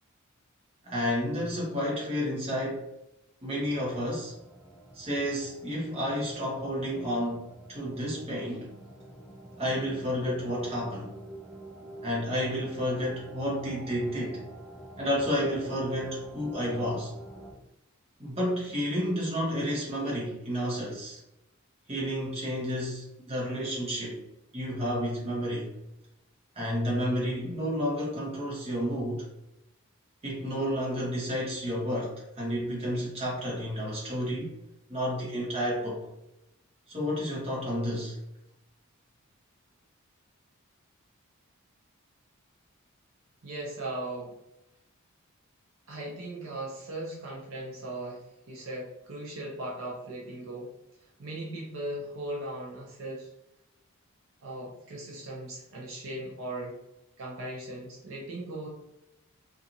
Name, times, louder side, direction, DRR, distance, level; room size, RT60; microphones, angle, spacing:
voice 1, 0.8-2.8 3.4-4.3 4.9-8.7 9.6-11.1 12.0-14.4 15.0-17.1 18.2-21.2 21.9-24.2 24.5-25.7 26.6-29.3 30.2-34.5 34.9-36.1 36.9-38.2, equal, 25° right, -5 dB, 0.9 m, -31 dB
sound 1, 3.5-17.5, right 2 dB, 5° left, 0.4 m, -47 dB
voice 2, 43.4-44.3 45.9-50.7 51.2-53.3 54.4-56.8 57.2-58.7, right 1 dB, 60° right, -3 dB, 0.6 m, -38 dB
2.8 x 2.5 x 2.5 m, 0.87 s
head